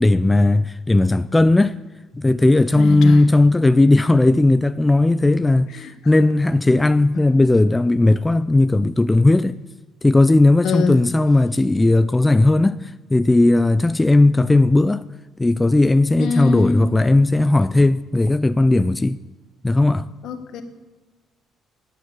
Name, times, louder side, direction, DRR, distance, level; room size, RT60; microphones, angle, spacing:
voice 1, 0.0-1.7 2.1-9.6 10.0-15.0 15.4-19.2 19.6-20.1, left 2 dB, 10° left, 0.4 m, -16 dB
voice 2, 2.8-3.2 5.7-6.1 10.6-11.0 16.2-16.9 20.2-20.6, left 4 dB, 70° left, 1.6 m, -24 dB
14.0 x 9.3 x 8.9 m
cardioid pair, 130°, 0 cm